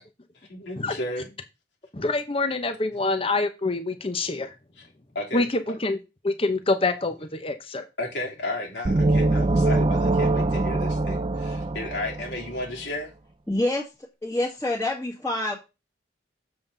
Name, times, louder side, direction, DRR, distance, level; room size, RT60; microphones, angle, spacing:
voice 1, 0.5-1.4 4.8-4.9 5.1-5.8 8.0-13.1, left 1 dB, 85° left, 3.3 m, -33 dB
voice 2, 1.9-4.5 5.3-6.0 6.2-7.8, left 3 dB, 30° left, 0.9 m, -26 dB
sound 1, 8.9-12.6, right 2 dB, 30° right, 0.4 m, -23 dB
voice 3, 13.5-13.8 14.2-15.5, left 1 dB, 15° left, 2.0 m, -26 dB
7.7 x 7.1 x 3.9 m
head